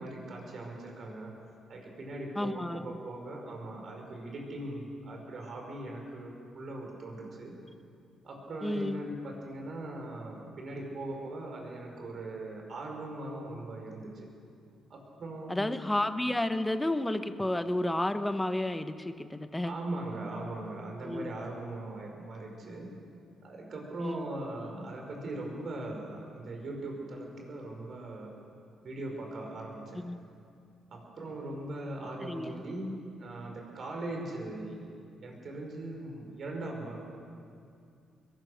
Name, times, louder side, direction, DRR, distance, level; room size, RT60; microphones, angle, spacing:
voice 1, 0.0-1.3 1.7-7.6 8.2-14.3 14.9-15.8 19.6-23.0 23.4-28.4 28.8-30.0 30.9-34.9 35.2-37.0, right 2 dB, 55° right, 1 dB, 5.4 m, -40 dB
voice 2, 2.4-2.8 8.6-9.0 15.5-19.7 21.0-21.4 24.0-24.3 30.0-30.2 32.2-32.6, left 1 dB, 10° left, 9 dB, 1.1 m, -31 dB
22.0 x 18.0 x 6.6 m, 2.4 s
cardioid pair, 90°, 0 cm